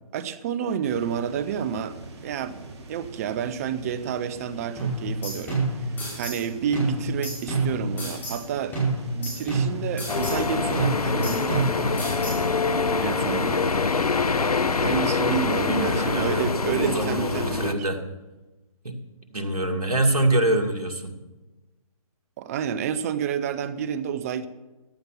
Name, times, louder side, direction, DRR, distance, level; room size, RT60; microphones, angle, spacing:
voice 1, 0.1-2.0 2.2-2.6 2.9-5.9 6.2-8.8 9.1-12.2 13.0-13.7 14.8-17.9 22.4-24.5, right 8 dB, 25° right, 14 dB, 0.7 m, -30 dB
sound 1, 0.8-17.1, right 3 dB, 45° right, 2.1 m, -43 dB
sound 2, 4.8-6.4 6.7-8.4 8.7-10.4 10.7-12.4, right 2 dB, 10° left, 5.0 m, -28 dB
sound 3, 10.1-17.7, left 4 dB, 80° left, 0.9 m, -25 dB
voice 2, 15.6-18.0 18.8-19.0 19.3-21.1, right 2 dB, 90° right, 4 dB, 2.4 m, -25 dB
14.5 x 10.5 x 5.7 m, 1.1 s
figure-of-eight pair, 145°, 19 cm